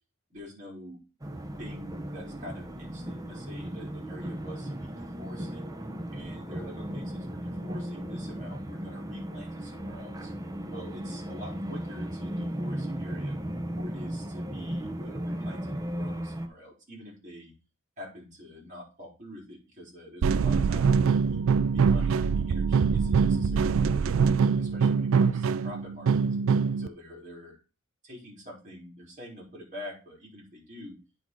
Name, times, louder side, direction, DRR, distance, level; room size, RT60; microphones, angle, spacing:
voice 1, 0.3-1.0 1.6-5.7 6.1-10.3 10.7-13.4 13.8-17.5 18.0-21.4 21.7-24.2 24.6-26.4 26.8-27.6 28.0-31.0, equal, 35° right, -2 dB, 4.5 m, -46 dB
sound 1, 1.2-16.5, right 1 dB, 15° right, 0.7 m, -36 dB
sound 2, 20.2-26.9, right 5 dB, 70° right, 0.4 m, -24 dB
9.5 x 4.2 x 4.7 m, 0.31 s
head